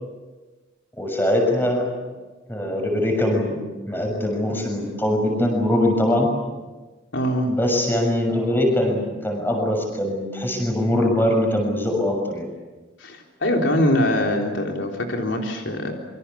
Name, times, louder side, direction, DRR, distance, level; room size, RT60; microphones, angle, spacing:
voice 1, 1.0-1.9 2.5-6.3 7.5-12.5, left 1 dB, 10° left, 2 dB, 6.7 m, -22 dB
voice 2, 7.1-7.5 13.0-15.9, left 1 dB, 75° left, 1 dB, 3.7 m, -23 dB
27.5 x 24.5 x 7.2 m, 1.2 s
head